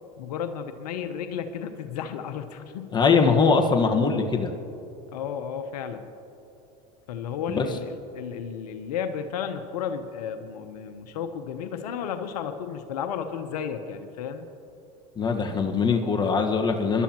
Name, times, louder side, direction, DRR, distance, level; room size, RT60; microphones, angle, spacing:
voice 1, 0.2-2.9 5.1-6.1 7.1-14.5, left 7 dB, 80° left, 8 dB, 0.9 m, -33 dB
voice 2, 2.9-4.5 7.5-7.6 15.2-17.0, left 5 dB, 20° left, 2 dB, 1.4 m, -22 dB
25.0 x 12.0 x 3.0 m, 2.8 s
hypercardioid pair, 95°, 20 cm